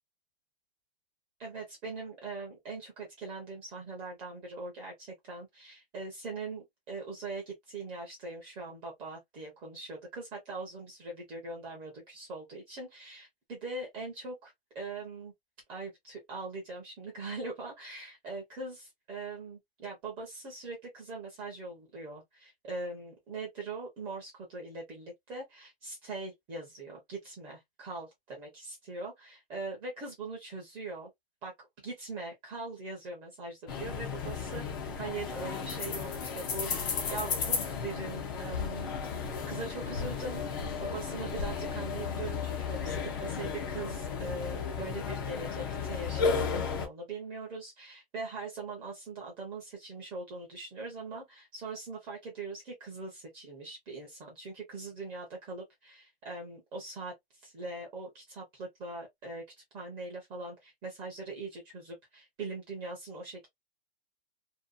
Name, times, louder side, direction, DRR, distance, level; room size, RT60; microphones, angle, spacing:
voice 1, 1.4-15.3 15.7-31.1 31.4-31.5 31.8-34.6 34.9-59.4 59.7-63.5, right 3 dB, 15° right, 0.6 m, -41 dB
sound 1, 33.7-46.9, left 6 dB, 25° left, 0.4 m, -34 dB
2.7 x 2.2 x 2.3 m
hypercardioid pair, 160°, 29 cm